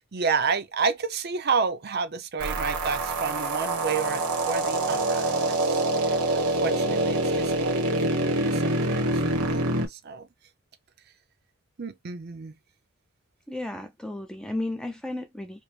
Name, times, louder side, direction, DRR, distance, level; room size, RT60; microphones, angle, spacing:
voice 1, 0.0-10.3 11.8-12.6, right 5 dB, 45° right, 0.5 m, -31 dB
sound 1, 2.4-9.9, right 2 dB, 90° right, 1.1 m, -25 dB
voice 2, 13.5-15.6, left 1 dB, 5° left, 0.4 m, -33 dB
5.1 x 2.1 x 3.1 m
head